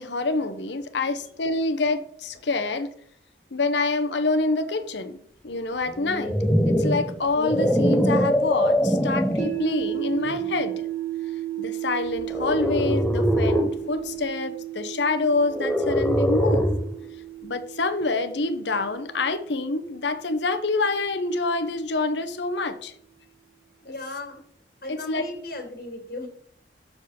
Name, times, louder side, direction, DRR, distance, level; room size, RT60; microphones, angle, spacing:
voice 1, 0.0-2.9 3.5-6.4 6.6-10.9 11.6-16.7 17.4-22.9 24.9-25.3, left 3 dB, 75° left, 9 dB, 0.9 m, -26 dB
sound 1, 6.0-9.6 10.2-10.5 12.3-13.8 15.5-17.0, equal, 5° left, 0.6 m, -23 dB
sound 2, 9.4-21.5, right 14 dB, 40° right, 1.3 m, -34 dB
voice 2, 23.8-24.4 24.8-26.3, left 2 dB, 50° left, 3 dB, 2.6 m, -36 dB
7.0 x 4.6 x 6.5 m, 0.66 s
head